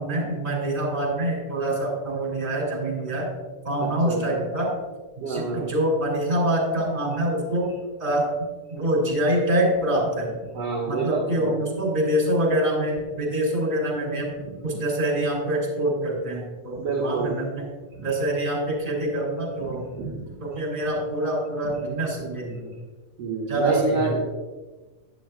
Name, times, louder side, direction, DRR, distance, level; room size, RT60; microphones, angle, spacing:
voice 1, 0.0-3.3 3.6-4.7 5.2-7.7 8.0-10.4 10.9-14.3 14.6-17.6 18.0-19.8 20.4-22.7 23.5-24.2, right 1 dB, 20° right, -1 dB, 2.5 m, -25 dB
voice 2, 3.8-4.4 5.2-5.7 10.5-11.6 16.8-17.3 19.6-20.3 23.2-24.2, right 4 dB, 65° right, -1 dB, 2.0 m, -28 dB
12.0 x 9.7 x 2.3 m, 1.2 s
omnidirectional pair, 3.3 m